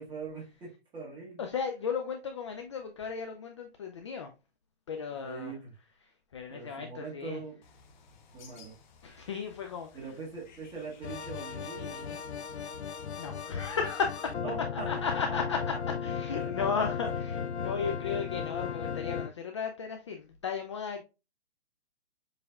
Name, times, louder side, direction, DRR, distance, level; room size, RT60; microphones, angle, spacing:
voice 1, 0.0-1.4 5.2-5.7 6.5-7.6 8.3-8.7 9.9-12.3 14.4-15.1 15.5-15.6 16.3-17.1, right 4 dB, 15° right, 1.8 m, -42 dB
voice 2, 1.4-4.3 4.9-5.5 6.0-7.4 9.0-10.0 13.2-14.4 14.7-15.8 16.0-21.0, left 6 dB, 30° left, 0.4 m, -35 dB
Bird, 7.6-13.3, left 5 dB, 45° left, 1.0 m, -58 dB
sound 1, 11.0-19.3, left 7 dB, 90° left, 0.5 m, -36 dB
7.0 x 3.2 x 2.4 m
hypercardioid pair, 140°, 32 cm